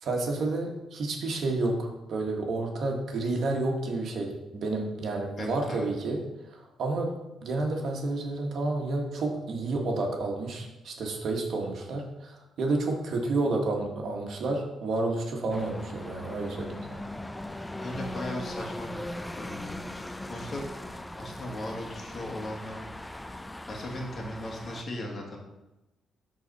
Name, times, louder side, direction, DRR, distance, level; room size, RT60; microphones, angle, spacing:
voice 1, 0.0-6.2 6.5-7.1 7.4-17.0, right 2 dB, 60° right, 1 dB, 1.6 m, -30 dB
voice 2, 5.4-5.9 17.8-19.1 19.3-20.7 21.2-22.8 23.7-25.4, left 1 dB, 40° left, 0 dB, 2.0 m, -37 dB
sound 1, 15.5-24.8, left 1 dB, 10° left, 0.4 m, -39 dB
12.0 x 4.1 x 4.2 m, 1.0 s
cardioid pair, 90°, 0 cm